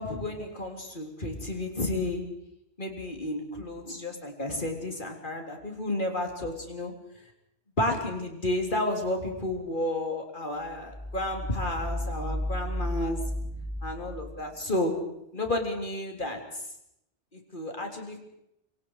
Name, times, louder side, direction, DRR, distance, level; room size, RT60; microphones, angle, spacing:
voice 1, 0.0-2.2 2.8-6.9 7.8-13.2 13.8-14.9 15.3-16.4 17.3-18.2, left 1 dB, 45° left, 3 dB, 3.8 m, -31 dB
sound 1, 10.7-14.4, equal, 15° left, 1.7 m, -34 dB
26.5 x 24.5 x 4.9 m, 0.80 s
omnidirectional pair, 1.2 m